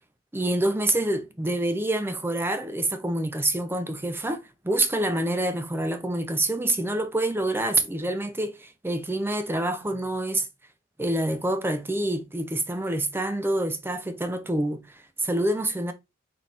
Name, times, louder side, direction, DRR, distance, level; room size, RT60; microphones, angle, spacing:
voice 1, 0.3-10.5 11.0-15.9, right 1 dB, 10° right, 0.5 m, -27 dB
4.1 x 3.1 x 4.1 m
head